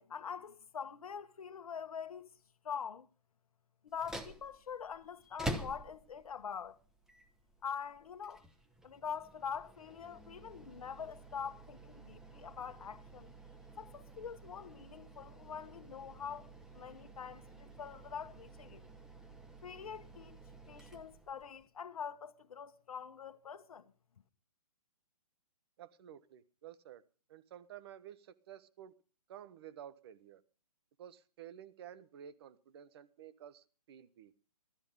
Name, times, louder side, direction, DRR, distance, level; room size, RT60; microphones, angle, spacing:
voice 1, 0.0-2.3 2.6-3.1 3.8-6.8 7.6-8.4 8.8-13.3 13.8-16.5 16.7-18.8 19.6-20.4 20.7-23.9, left 7 dB, 65° left, 1.3 m, -44 dB
sound 1, 3.9-21.7, right 1 dB, 5° right, 0.9 m, -49 dB
voice 2, 25.8-27.0 27.3-28.9 29.3-30.4 31.0-34.3, right 10 dB, 40° right, 1.2 m, -52 dB
17.0 x 13.0 x 5.3 m
figure-of-eight pair, 135°, 19 cm